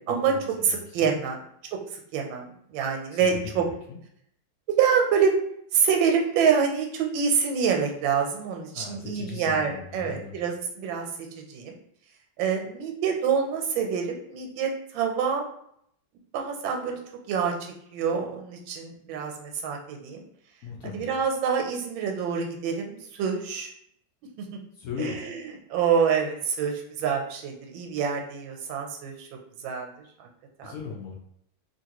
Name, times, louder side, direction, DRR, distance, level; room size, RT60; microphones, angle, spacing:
voice 1, 0.1-1.2 3.1-3.6 3.9-4.0 8.7-10.3 20.6-21.1 24.7-25.2 30.6-31.1, left 6 dB, 85° left, -2 dB, 0.7 m, -38 dB
voice 2, 0.6-1.4 2.1-2.5 2.7-3.6 4.8-5.3 5.7-11.1 11.5-11.8 12.4-15.4 16.3-17.0 17.3-20.2 20.9-23.7 24.4-24.5 25.0-25.4 25.7-26.7 27.0-29.3 29.6-29.9 30.6-30.7, right 6 dB, 90° right, 2 dB, 1.4 m, -26 dB
2.8 x 2.8 x 2.8 m, 0.70 s
omnidirectional pair, 2.1 m